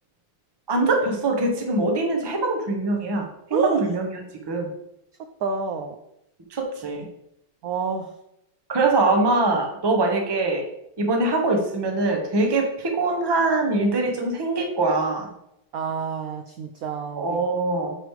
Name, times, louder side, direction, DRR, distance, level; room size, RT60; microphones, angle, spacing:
voice 1, 0.7-4.7 6.5-7.1 8.7-10.6 11.0-15.3 17.2-18.0, right 2 dB, 25° right, 2 dB, 0.5 m, -23 dB
voice 2, 5.4-5.9 7.6-8.1 15.7-17.4, right 5 dB, 75° right, 6 dB, 0.8 m, -28 dB
8.9 x 3.3 x 4.7 m, 0.82 s
omnidirectional pair, 2.2 m